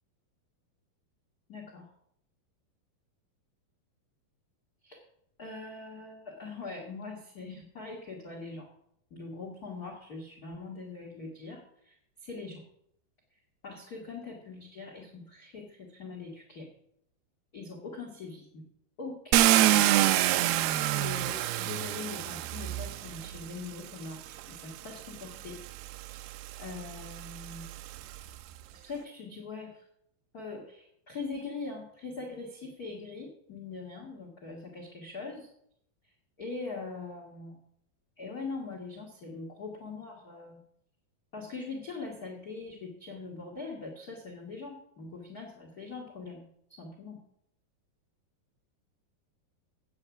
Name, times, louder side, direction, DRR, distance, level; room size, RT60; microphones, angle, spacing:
voice 1, 1.5-1.9 4.8-5.0 5.4-8.7 9.1-11.9 12.2-12.6 13.6-16.7 17.5-18.6 19.0-20.1 20.9-25.6 26.0-27.7 28.7-29.8 30.3-35.5 36.4-37.6 38.2-40.6 41.3-47.2, left 4 dB, 55° left, 1 dB, 1.0 m, -42 dB
Car, 19.3-23.4 24.4-24.5 25.0-28.3, right 14 dB, 85° right, 2.5 m, -27 dB
8.5 x 7.8 x 7.1 m, 0.72 s
omnidirectional pair, 4.4 m